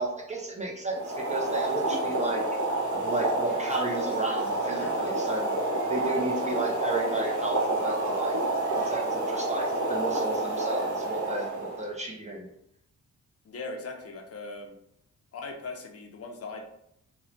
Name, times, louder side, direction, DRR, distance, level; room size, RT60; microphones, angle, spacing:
voice 1, 0.0-2.4 2.9-8.4 8.7-12.5, right 2 dB, 25° right, 0 dB, 0.4 m, -33 dB
Boiling, 0.9-11.9, right 2 dB, 70° right, 0.8 m, -29 dB
voice 2, 13.4-14.8 15.3-16.6, left 3 dB, 50° left, 2 dB, 0.4 m, -39 dB
3.0 x 2.0 x 2.5 m, 0.76 s
wide cardioid pair, 110°, 32 cm